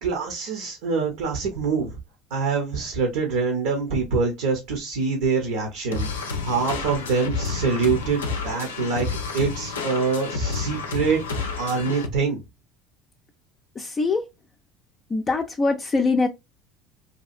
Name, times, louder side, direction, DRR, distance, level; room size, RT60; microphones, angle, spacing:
voice 1, 0.0-2.0 2.3-12.4, right 4 dB, 75° right, 0.8 m, -25 dB
sound 1, 5.9-12.1, left 4 dB, 90° left, 0.5 m, -30 dB
voice 2, 13.8-14.2 15.1-16.3, left 3 dB, 25° left, 0.4 m, -23 dB
2.7 x 2.4 x 2.5 m
hypercardioid pair, 75°, 0 cm